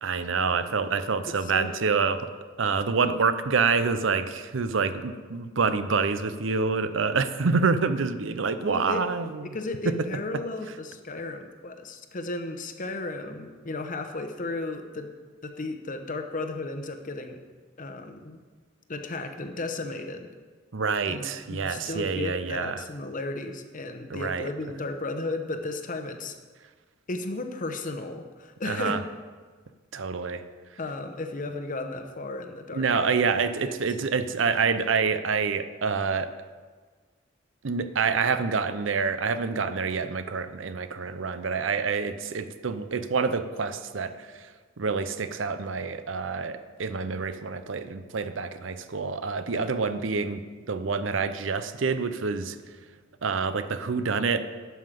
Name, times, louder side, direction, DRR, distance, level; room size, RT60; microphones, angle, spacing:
voice 1, 0.0-2.3 2.6-9.6 20.7-22.8 24.1-24.5 28.6-29.0 29.9-30.4 32.7-36.3 37.6-44.5 44.8-52.6 53.2-54.4, right 5 dB, 70° right, 11 dB, 0.6 m, -27 dB
voice 2, 1.3-1.7 8.6-9.0 9.4-15.1 15.4-17.4 17.8-18.4 18.9-20.3 21.1-26.4 27.1-29.0 30.8-33.2 33.6-33.7 49.5-49.7, left 2 dB, 45° left, 6 dB, 0.9 m, -34 dB
11.5 x 5.7 x 7.5 m, 1.5 s
head